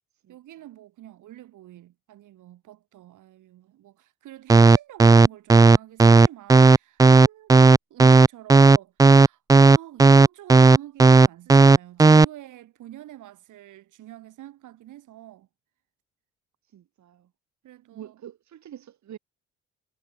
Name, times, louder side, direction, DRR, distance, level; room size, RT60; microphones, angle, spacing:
voice 1, 0.3-15.5 17.6-18.2, right 14 dB, 80° right, 6.6 m, -46 dB
sound 1, 4.5-12.2, right 4 dB, 10° right, 0.4 m, -12 dB
voice 2, 16.7-17.3 17.9-19.2, right 10 dB, 65° right, 4.5 m, -45 dB
cardioid pair, 90°, 30 cm